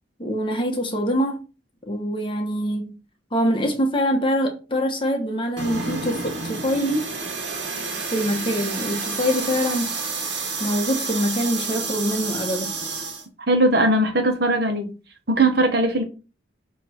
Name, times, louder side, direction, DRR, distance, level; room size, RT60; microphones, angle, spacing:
voice 1, 0.2-1.4 1.9-2.9 3.3-7.1 8.0-9.9 10.6-12.7, equal, 25° left, 1.2 m, -24 dB
sound 1, 5.6-13.3, right 4 dB, 75° right, 1.5 m, -29 dB
voice 2, 13.5-14.9 15.3-16.0, right 1 dB, 55° right, 1.3 m, -19 dB
6.9 x 3.1 x 4.3 m
head